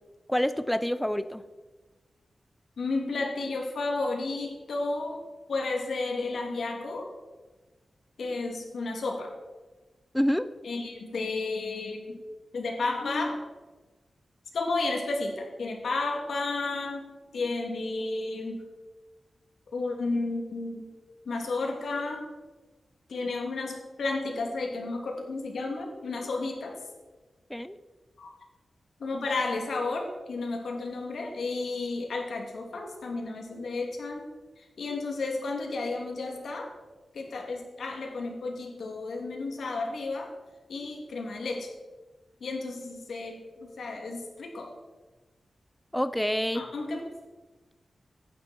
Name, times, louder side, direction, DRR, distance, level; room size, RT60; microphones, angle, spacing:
voice 1, 0.3-1.4 10.1-10.5 27.5-27.8 45.9-46.6, equal, 5° left, 13 dB, 0.5 m, -27 dB
voice 2, 2.8-5.2 5.5-7.1 8.2-9.3 10.6-12.2 12.5-13.5 14.5-17.0 17.3-18.6 19.7-20.9 21.2-22.3 23.1-26.8 28.2-28.3 29.0-34.3 34.6-36.7 37.1-40.3 40.7-41.7 42.4-44.7 46.5-47.1, left 3 dB, 90° left, 1 dB, 2.9 m, -32 dB
16.5 x 11.0 x 4.6 m, 1.3 s
wide cardioid pair, 115°, 0 cm